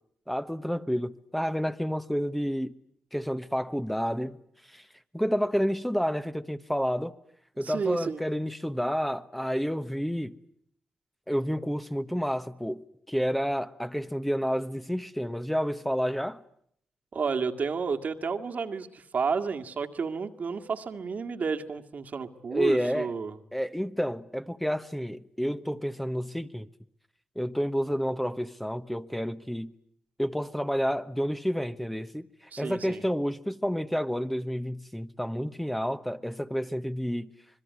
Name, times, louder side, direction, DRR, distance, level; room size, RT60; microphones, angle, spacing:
voice 1, 0.3-2.7 3.1-4.4 4.7-4.8 5.1-7.1 7.6-10.4 11.3-16.4 22.5-23.1 23.5-26.7 27.4-29.7 30.2-32.3 32.6-37.3, equal, 5° left, 1.1 m, -30 dB
voice 2, 7.6-8.2 17.1-23.4 32.5-33.0, right 5 dB, 60° right, 2.0 m, -31 dB
26.0 x 21.5 x 9.5 m
supercardioid pair, 50°, 3 cm